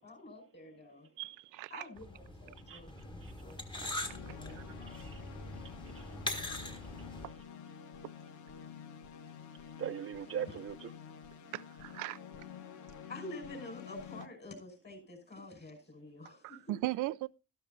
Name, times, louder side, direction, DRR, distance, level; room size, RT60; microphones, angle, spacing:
voice 1, 0.0-1.1 1.7-5.0 10.5-10.6 13.1-16.7, left 2 dB, 35° left, 5.7 m, -49 dB
voice 2, 1.2-1.9 4.0-4.2 4.5-4.6 11.5-12.2 16.4-17.3, right 18 dB, 90° right, 0.5 m, -38 dB
sound 1, 2.0-7.3, left 1 dB, 15° left, 1.7 m, -42 dB
sound 2, 4.0-14.3, left 7 dB, 75° left, 1.2 m, -49 dB
voice 3, 4.9-5.2 5.5-7.1 9.8-10.9, right 9 dB, 45° right, 0.7 m, -42 dB
12.5 x 12.5 x 2.6 m
cardioid pair, 90°, 30 cm